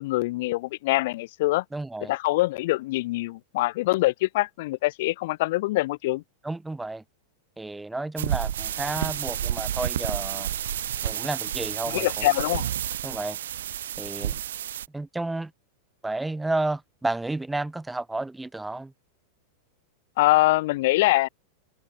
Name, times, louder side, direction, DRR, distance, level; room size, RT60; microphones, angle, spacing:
voice 1, 0.0-1.6 2.1-6.2 11.9-12.7 20.2-21.3, left 19 dB, 50° left, 0.7 m, -24 dB
voice 2, 1.7-2.1 6.4-7.0 7.6-10.5 11.0-12.3 13.0-13.4 14.0-14.4 14.9-15.5 16.0-18.9, right 2 dB, 5° right, 4.8 m, -31 dB
sound 1, 8.2-14.9, right 11 dB, 60° right, 2.7 m, -30 dB
open air
figure-of-eight pair, 90°, 0 cm